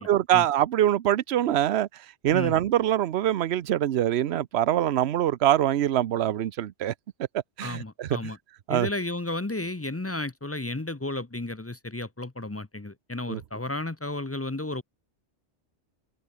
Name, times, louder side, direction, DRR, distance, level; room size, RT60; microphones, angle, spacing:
voice 1, 0.0-1.9 2.2-6.9 7.3-8.3 8.7-8.9 13.3-13.4, right 11 dB, 65° right, 0.9 m, -24 dB
voice 2, 7.6-8.4 8.7-14.8, left 2 dB, 15° left, 0.6 m, -33 dB
omnidirectional pair, 1.2 m